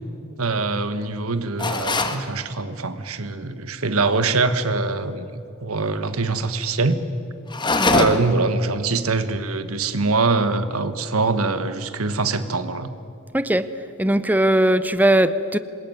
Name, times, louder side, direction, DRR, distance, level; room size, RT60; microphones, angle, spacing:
voice 1, 0.4-5.3 5.6-7.0 7.9-12.9, right 3 dB, 85° right, 11 dB, 1.5 m, -23 dB
sound 1, 1.6-2.2 7.5-8.4, left 3 dB, 20° left, 1.5 m, -22 dB
voice 2, 13.3-13.7 14.0-15.6, right 1 dB, 10° right, 13 dB, 0.7 m, -19 dB
26.5 x 21.0 x 9.5 m, 2.6 s
head